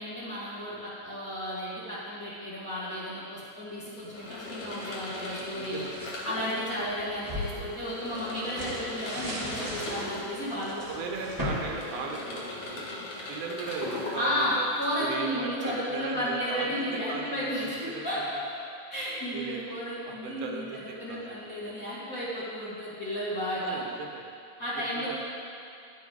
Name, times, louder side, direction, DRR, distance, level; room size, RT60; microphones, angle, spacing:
voice 1, 0.0-5.8 6.2-10.9 14.2-18.4 18.9-23.8 24.6-25.2, equal, 30° left, -9 dB, 2.0 m, -33 dB
sound 1, 4.1-15.1, left 2 dB, 55° left, 1.9 m, -40 dB
sound 2, 4.2-6.2 6.7-12.8, left 1 dB, 10° right, 0.9 m, -38 dB
voice 2, 5.5-6.0 7.5-7.8 9.5-10.0 10.9-12.9 13.3-18.2 19.3-21.7 23.6-24.3 24.9-25.2, right 4 dB, 75° right, 1 dB, 2.3 m, -38 dB
10.0 x 9.5 x 3.6 m, 2.5 s
omnidirectional pair, 3.6 m